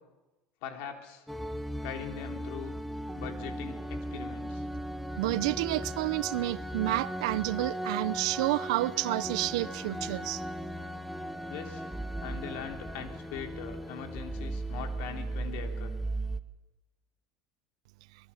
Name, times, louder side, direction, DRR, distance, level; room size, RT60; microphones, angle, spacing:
voice 1, 0.6-1.2 1.8-2.7 3.1-4.6 11.5-11.8 12.2-15.9, left 7 dB, 65° left, 3.4 m, -41 dB
sound 1, 1.3-16.4, right 1 dB, ahead, 0.9 m, -37 dB
voice 2, 5.2-10.4, right 18 dB, 85° right, 0.7 m, -30 dB
24.5 x 22.0 x 7.3 m
supercardioid pair, 140°, 3 cm